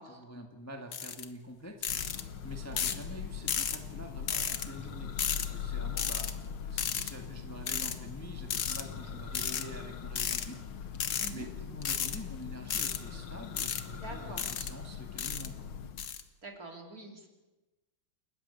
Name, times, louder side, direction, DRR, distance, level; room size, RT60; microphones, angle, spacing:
voice 1, 0.1-1.8 2.4-5.1 5.4-6.3 6.7-11.0 11.3-15.7, equal, 10° left, 4 dB, 1.6 m, -46 dB
sound 1, 0.9-1.2 1.8-2.2 2.8-3.0 3.5-3.8 4.3-4.7 5.2-5.5 6.0-6.3 6.8-7.1 7.7-7.9 8.5-8.8 9.3-9.6 10.2-10.5 10.9-11.3 11.8-12.2 12.7-13.0 13.6-13.8 14.4-14.7 15.2-15.5 16.0-16.2, left 8 dB, 60° left, 1.8 m, -33 dB
Church bell, 1.9-16.2, left 7 dB, 80° left, 2.1 m, -41 dB
voice 2, 11.2-11.5 14.0-14.4 16.4-17.3, right 3 dB, 45° right, 2 dB, 3.7 m, -45 dB
29.0 x 14.0 x 8.4 m, 1.1 s
omnidirectional pair, 2.3 m